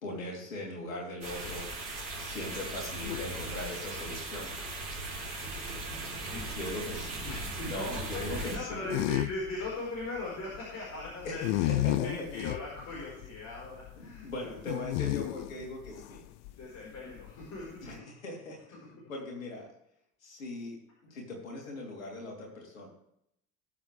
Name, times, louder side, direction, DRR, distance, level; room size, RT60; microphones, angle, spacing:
voice 1, 0.0-1.7 2.2-4.5 6.6-7.1 7.7-8.9 11.2-12.1 14.0-16.2 17.8-18.0 18.2-18.6 19.1-19.7 20.2-20.8 21.1-22.9, left 2 dB, 75° left, -1 dB, 3.4 m, -39 dB
sound 1, 1.2-8.6, right 3 dB, 80° right, 4.1 m, -38 dB
sound 2, 1.4-18.0, left 16 dB, 60° left, 0.6 m, -36 dB
voice 2, 7.2-11.7 12.0-14.3 16.5-17.9 18.7-18.8, left 2 dB, 40° left, -4 dB, 4.7 m, -39 dB
19.5 x 7.5 x 3.4 m, 0.75 s
figure-of-eight pair, 60°, 41 cm